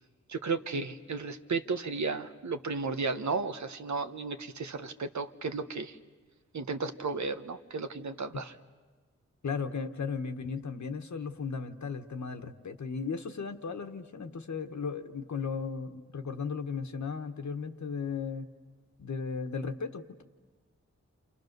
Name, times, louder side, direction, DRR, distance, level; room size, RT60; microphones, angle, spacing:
voice 1, 0.3-6.0 6.5-8.5, right 4 dB, 75° right, 9 dB, 1.2 m, -34 dB
voice 2, 9.4-18.5 19.0-20.2, left 5 dB, 75° left, 6 dB, 1.3 m, -36 dB
29.5 x 27.5 x 6.7 m, 1.3 s
wide cardioid pair, 80°, 29 cm